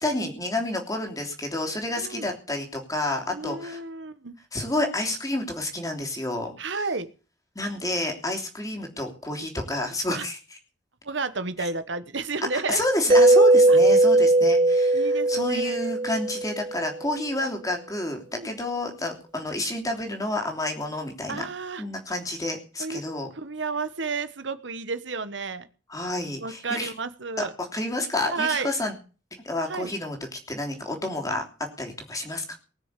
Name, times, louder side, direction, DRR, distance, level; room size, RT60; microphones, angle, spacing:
voice 1, 0.0-3.8 4.5-6.5 7.5-10.4 12.5-21.4 21.8-23.3 25.9-26.9 27.4-27.5 27.7-28.9 29.4-31.4 31.8-32.5, left 1 dB, 20° left, 2 dB, 3.1 m, -29 dB
voice 2, 2.0-2.3 3.3-4.3 6.6-7.1 10.1-10.3 11.0-12.8 13.7-13.8 14.9-15.7 18.4-18.5 21.3-21.8 22.8-23.0 23.3-25.7 26.4-27.5 28.3-28.7 29.7-29.9, right 4 dB, 75° right, 12 dB, 1.2 m, -31 dB
Mallet percussion, 13.1-16.9, right 2 dB, 25° right, 1.1 m, -18 dB
19.5 x 6.6 x 8.3 m, 0.37 s
head